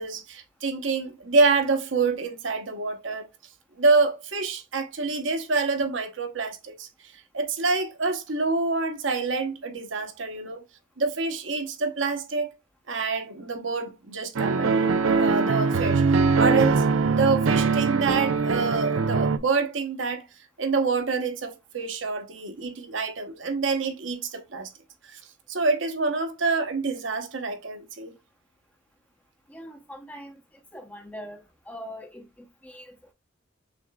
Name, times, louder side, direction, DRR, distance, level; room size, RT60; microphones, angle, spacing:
voice 1, 0.0-3.3 3.8-6.9 7.3-10.6 11.0-12.5 12.9-16.8 17.1-20.2 20.6-24.7 25.5-28.1, right 4 dB, 70° right, 0.9 m, -27 dB
sound 1, 14.4-19.4, right 4 dB, 85° right, 0.5 m, -22 dB
voice 2, 29.5-30.4 30.7-33.1, equal, 5° left, 0.7 m, -42 dB
6.1 x 3.7 x 2.2 m
head